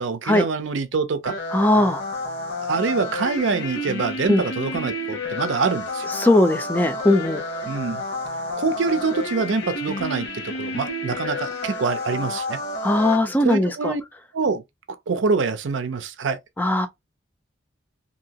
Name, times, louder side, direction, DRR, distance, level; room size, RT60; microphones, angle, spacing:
voice 1, 0.0-1.4 2.6-6.1 7.7-8.0 8.6-12.6 13.4-14.0 14.3-14.6 15.1-16.4, right 4 dB, 85° right, 0.5 m, -25 dB
sound 1, 1.3-13.2, left 2 dB, 75° left, 1.0 m, -30 dB
voice 2, 1.5-2.0 4.3-4.4 6.1-7.4 12.8-13.9 16.6-16.9, left 1 dB, 10° left, 0.4 m, -19 dB
2.9 x 2.7 x 2.8 m
head